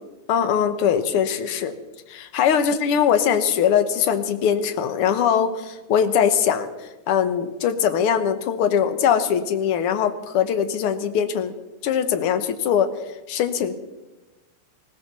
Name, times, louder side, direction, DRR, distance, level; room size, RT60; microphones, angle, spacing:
voice 1, 0.3-1.7 2.1-11.5 11.8-12.9 13.3-13.7, left 8 dB, 65° left, 10 dB, 1.6 m, -21 dB
20.0 x 17.0 x 4.1 m, 1.1 s
omnidirectional pair, 3.4 m